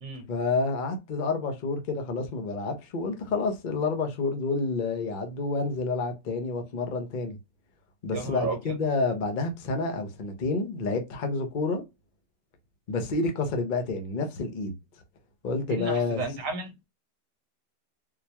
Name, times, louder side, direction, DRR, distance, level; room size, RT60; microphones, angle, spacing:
voice 1, 0.3-7.4 8.0-11.8 12.9-14.7 15.4-16.2, left 3 dB, 65° left, 0.4 m, -29 dB
voice 2, 8.1-8.6 15.7-16.8, right 3 dB, 55° right, 1.2 m, -33 dB
4.0 x 2.2 x 2.8 m
omnidirectional pair, 1.9 m